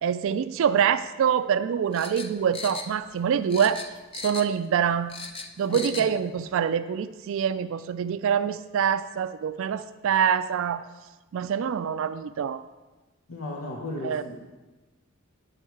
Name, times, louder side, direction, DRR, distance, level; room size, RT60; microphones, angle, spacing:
voice 1, 0.0-3.8 4.1-5.1 5.6-10.8 11.3-12.6 14.0-14.2, right 8 dB, 65° right, 11 dB, 0.3 m, -25 dB
sound 1, 1.9-3.2 3.5-4.6 4.9-6.1 6.4-6.5, left 4 dB, 25° left, 0.6 m, -37 dB
voice 2, 5.7-6.1 13.3-14.6, left 2 dB, 75° left, -1 dB, 1.0 m, -36 dB
9.9 x 6.4 x 4.6 m, 1.2 s
head